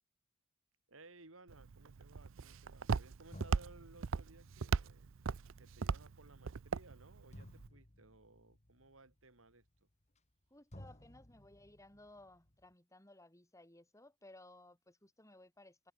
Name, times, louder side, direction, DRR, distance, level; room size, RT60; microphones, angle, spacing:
voice 1, 0.9-5.1 5.6-9.7, right 2 dB, 85° right, 4.0 m, -60 dB
Walk footsteps, 1.5-7.7, right 5 dB, 70° right, 0.5 m, -39 dB
sound 1, 3.3-10.4 10.7-12.7, left 1 dB, 35° left, 2.7 m, -59 dB
voice 2, 10.5-15.9, left 2 dB, 15° left, 7.1 m, -59 dB
head